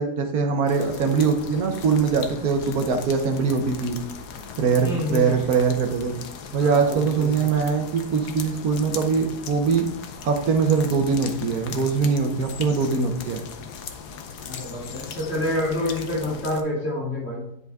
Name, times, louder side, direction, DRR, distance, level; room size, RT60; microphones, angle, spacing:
voice 1, 0.0-4.0 4.6-6.1 6.5-9.9 10.2-13.4, right 5 dB, 65° right, 5 dB, 1.3 m, -22 dB
sound 1, 0.7-16.6, left 6 dB, 75° left, 1.3 m, -38 dB
voice 2, 4.8-5.3 6.6-7.6 14.4-17.5, left 1 dB, 40° left, -4 dB, 2.8 m, -28 dB
10.0 x 4.6 x 3.5 m, 0.77 s
omnidirectional pair, 1.8 m